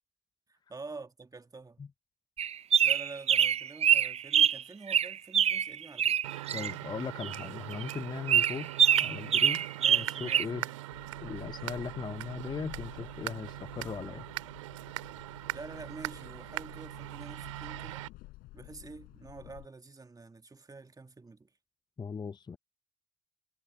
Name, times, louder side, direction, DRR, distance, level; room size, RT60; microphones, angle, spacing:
voice 1, 0.5-1.9 2.8-6.2 9.8-10.8 15.5-18.0 18.5-21.5, right 3 dB, 25° right, 2.1 m, -47 dB
sound 1, 2.4-4.6 4.9-6.7 7.2-7.4 7.7-8.0 8.3-10.4, right 9 dB, 40° right, 0.6 m, -25 dB
sound 2, 6.2-18.1, right 17 dB, 80° right, 2.2 m, -41 dB
voice 2, 6.5-8.7 9.0-10.7 11.2-14.2 22.0-22.6, left 5 dB, 25° left, 0.7 m, -39 dB
sound 3, 10.9-19.7, left 20 dB, 70° left, 4.1 m, -52 dB
hypercardioid pair, 50°, 16 cm